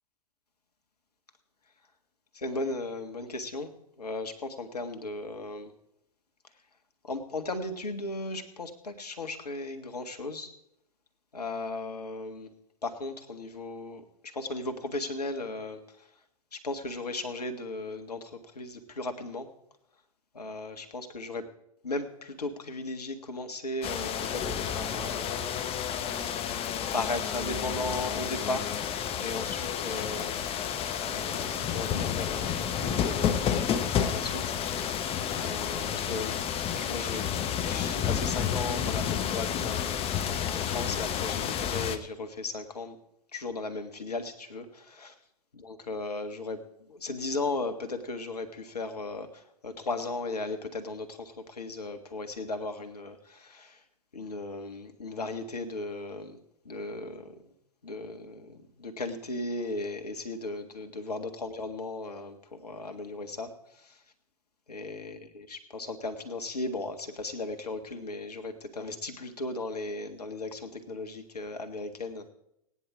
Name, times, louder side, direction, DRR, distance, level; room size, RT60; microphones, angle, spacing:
voice 1, 2.3-3.7 4.0-5.7 7.0-10.5 11.3-12.5 12.8-16.1 16.5-19.5 20.3-21.4 21.8-25.3 26.9-30.6 31.0-34.9 35.4-36.4 36.7-37.3 37.6-43.0 43.3-45.1 45.6-46.6 46.9-53.8 54.1-56.4 56.6-57.5 57.8-64.0 64.7-72.3, left 2 dB, 80° left, 7 dB, 1.7 m, -36 dB
sound 1, 23.8-42.0, left 8 dB, 30° left, 1.0 m, -30 dB
17.5 x 9.9 x 4.9 m, 0.79 s
figure-of-eight pair, 95°, 20 cm